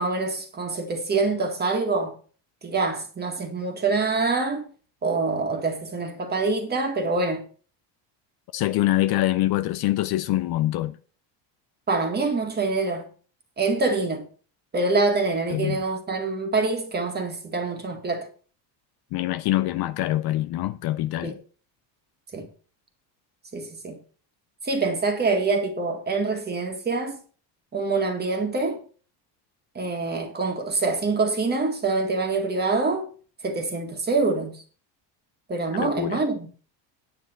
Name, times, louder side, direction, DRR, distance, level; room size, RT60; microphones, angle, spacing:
voice 1, 0.0-2.2 2.6-4.7 5.0-7.4 11.9-13.1 13.6-14.3 14.7-18.3 21.2-21.4 22.3-22.5 23.5-24.0 24.6-27.2 27.7-28.8 29.8-33.1 33.4-34.6 35.5-36.5, right 3 dB, 20° right, 2.0 m, -25 dB
voice 2, 8.5-11.0 15.5-15.8 19.1-21.4 35.7-36.3, left 15 dB, 55° left, 0.7 m, -24 dB
9.3 x 8.8 x 4.5 m
cardioid pair, 160°, 45 cm